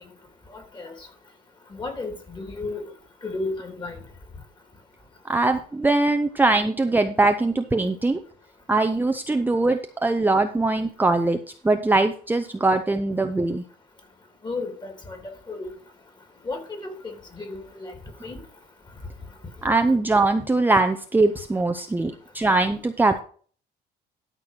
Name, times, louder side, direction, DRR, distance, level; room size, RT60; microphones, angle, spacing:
voice 1, 0.5-0.9 1.7-2.8 3.2-4.0 14.4-15.2 15.5-15.7 16.4-17.9 18.2-18.4, left 3 dB, 25° left, 3.2 m, -33 dB
voice 2, 5.2-8.2 8.7-11.4 11.6-13.6 19.6-23.2, right 2 dB, 10° right, 0.7 m, -21 dB
12.5 x 4.6 x 6.0 m
cardioid pair, 110°, 17 cm